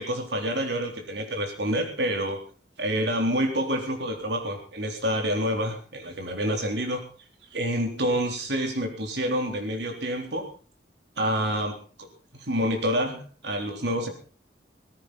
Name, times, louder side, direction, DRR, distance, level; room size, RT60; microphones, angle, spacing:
voice 1, 0.0-2.4 2.8-7.0 7.5-10.5 11.2-12.1 12.3-14.1, equal, 80° right, 3 dB, 3.8 m, -28 dB
17.0 x 15.5 x 4.2 m, 0.39 s
head